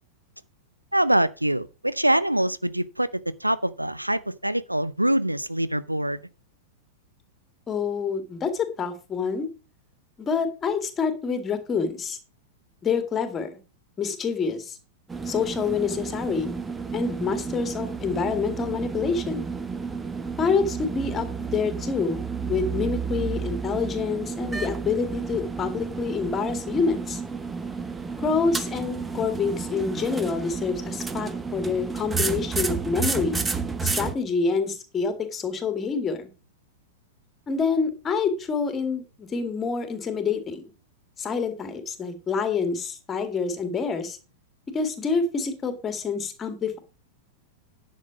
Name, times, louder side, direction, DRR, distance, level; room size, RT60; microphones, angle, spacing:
voice 1, 0.9-6.2, right 1 dB, 85° right, 0.5 m, -24 dB
voice 2, 7.7-9.5 10.2-12.2 12.8-13.6 14.0-14.8 15.3-16.5 16.9-19.5 20.4-27.2 28.2-33.4 33.8-36.3 37.5-40.6 41.2-44.2 44.7-46.8, left 5 dB, 20° left, 2.1 m, -27 dB
sound 1, 15.1-34.1, right 5 dB, 15° right, 1.0 m, -31 dB
10.5 x 6.4 x 5.1 m
figure-of-eight pair, 90°, 0 cm